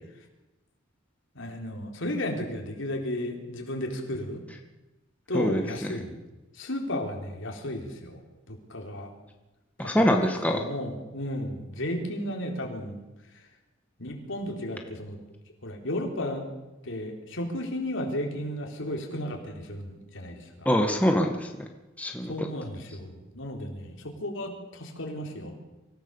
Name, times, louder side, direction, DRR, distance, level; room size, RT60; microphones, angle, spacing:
voice 1, 1.3-4.4 5.3-6.2 6.5-9.1 9.8-10.0 10.5-13.0 13.3-13.4 14.0-15.2 15.6-16.5 16.8-20.7 22.3-25.6, left 1 dB, 65° left, 3 dB, 3.9 m, -34 dB
voice 2, 9.8-10.6 20.6-21.5 22.0-22.3, equal, 5° left, 3 dB, 1.7 m, -23 dB
25.0 x 16.0 x 7.1 m, 1.1 s
head